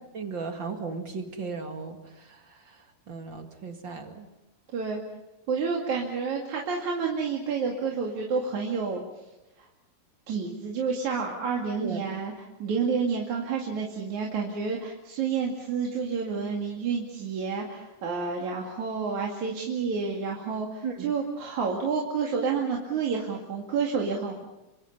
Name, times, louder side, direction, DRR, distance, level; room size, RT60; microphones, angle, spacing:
voice 1, 0.1-4.3 11.8-12.0 20.8-21.1, right 4 dB, 40° right, 5 dB, 2.3 m, -36 dB
voice 2, 5.5-9.0 9.6-9.7 10.3-12.3 12.6-24.5, right 5 dB, 60° right, -1 dB, 3.6 m, -29 dB
28.5 x 25.0 x 5.6 m, 1.0 s
omnidirectional pair, 4.0 m